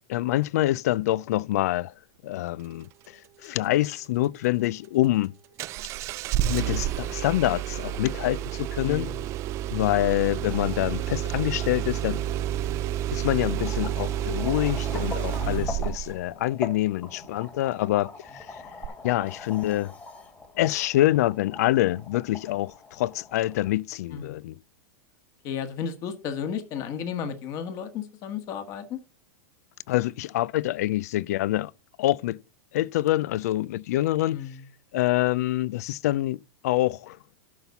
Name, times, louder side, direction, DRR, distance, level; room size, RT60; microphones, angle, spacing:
voice 1, 0.1-1.9 2.2-5.3 6.4-9.1 9.7-12.2 13.1-18.6 19.0-19.9 20.6-24.6 29.9-31.7 32.0-32.4 32.7-34.4 34.9-37.2, left 15 dB, 70° left, 0.3 m, -26 dB
Engine starting, 5.6-16.2 18.8-18.9, right 12 dB, 35° right, 0.4 m, -30 dB
voice 2, 8.8-9.3 15.4-15.8 24.1-24.4 25.4-29.0 34.3-34.6, left 7 dB, 40° left, 1.6 m, -33 dB
sound 1, 10.5-23.7, left 4 dB, 20° left, 1.8 m, -42 dB
11.5 x 4.1 x 7.0 m
supercardioid pair, 140°, 9 cm